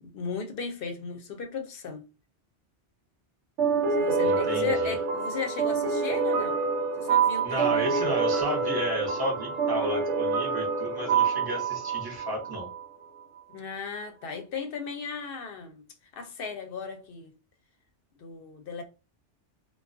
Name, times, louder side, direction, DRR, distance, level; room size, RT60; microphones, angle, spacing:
voice 1, 0.0-2.0 3.9-6.6 7.0-8.0 13.5-15.9 16.1-17.3 18.2-18.8, left 5 dB, 60° left, 0.6 m, -36 dB
sound 1, 3.6-12.8, right 5 dB, 75° right, 0.9 m, -27 dB
voice 2, 4.2-4.9 7.4-12.7, equal, 25° right, 0.7 m, -33 dB
2.3 x 2.3 x 2.4 m
omnidirectional pair, 1.2 m